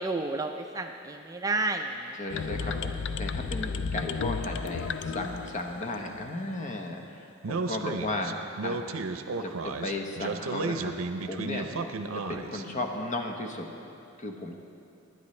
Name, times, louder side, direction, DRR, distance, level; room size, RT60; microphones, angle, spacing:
voice 1, 0.0-1.9 2.6-2.7, right 3 dB, 15° right, 4 dB, 0.4 m, -31 dB
voice 2, 2.2-8.8 9.4-10.9 11.2-11.7 12.3-13.7 14.2-14.5, left 2 dB, 35° left, 3 dB, 1.0 m, -35 dB
sound 1, 2.3-6.2, left 5 dB, 60° left, 0.4 m, -33 dB
Speech, 7.4-12.6, right 3 dB, 80° right, 0.6 m, -33 dB
20.0 x 9.5 x 3.2 m, 2.7 s
head